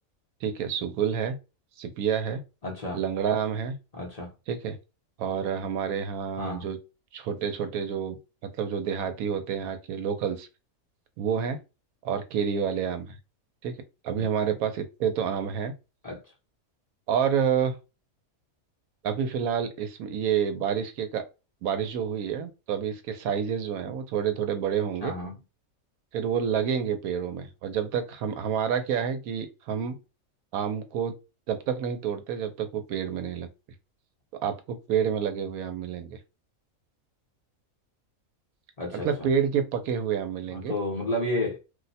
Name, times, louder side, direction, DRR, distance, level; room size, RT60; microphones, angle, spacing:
voice 1, 0.4-1.4 1.8-2.4 2.9-3.8 4.5-4.8 5.2-6.8 7.1-8.2 8.4-10.5 11.2-11.6 12.0-13.2 13.6-13.8 14.0-15.7 17.1-17.8 19.0-21.2 21.6-25.1 26.1-30.0 30.5-31.2 31.5-33.5 34.4-36.2 39.0-40.7, right 7 dB, 85° right, 1.1 m, -28 dB
voice 2, 2.6-3.0 3.9-4.3 6.4-6.7 16.0-16.2 25.0-25.4 38.8-39.3 40.5-41.6, left 1 dB, 35° left, 0.7 m, -31 dB
2.6 x 2.1 x 4.0 m
omnidirectional pair, 1.5 m